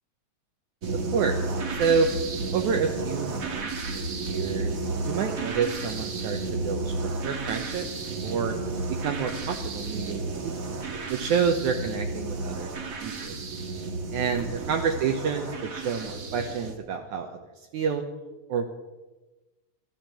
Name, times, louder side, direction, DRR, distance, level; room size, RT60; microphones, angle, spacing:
sound 1, 0.8-16.8, right 3 dB, 45° right, 1.1 m, -32 dB
voice 1, 1.1-1.4 1.7-2.1 2.5-8.5 8.9-10.5 11.1-13.4 14.1-17.4 17.7-18.0 18.5-18.7, right 6 dB, 70° right, 4 dB, 2.2 m, -29 dB
14.5 x 12.0 x 7.5 m, 1.2 s
omnidirectional pair, 3.8 m